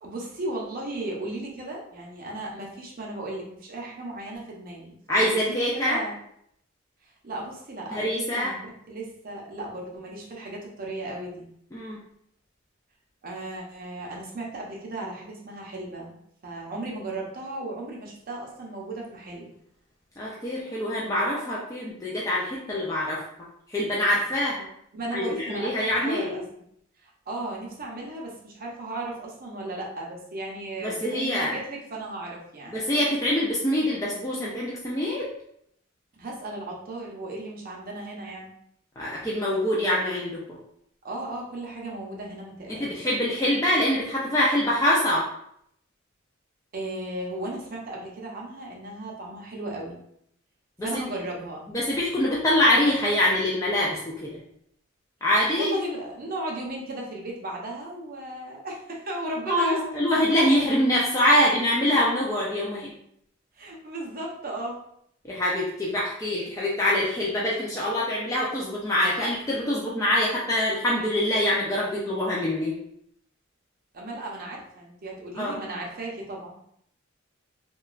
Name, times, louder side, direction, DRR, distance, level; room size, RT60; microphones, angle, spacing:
voice 1, 0.0-6.2 7.2-8.0 8.3-8.6 8.9-11.5 13.2-16.2 16.4-19.5 24.9-25.7 26.0-26.4 27.0-32.8 36.2-38.5 41.0-43.1 46.7-50.0 50.8-51.6 55.5-59.8 63.6-64.8 73.9-76.6, right 2 dB, 45° right, -2 dB, 0.6 m, -35 dB
voice 2, 5.1-6.0 7.9-8.5 11.7-12.0 20.2-23.2 23.7-24.7 25.1-26.4 30.8-31.5 32.7-35.3 39.0-40.6 42.7-45.3 50.8-50.9 51.7-54.4 55.2-55.8 59.5-62.9 65.3-72.8 75.3-75.6, left 1 dB, 15° left, -5 dB, 0.4 m, -24 dB
3.0 x 2.2 x 2.4 m, 0.71 s
head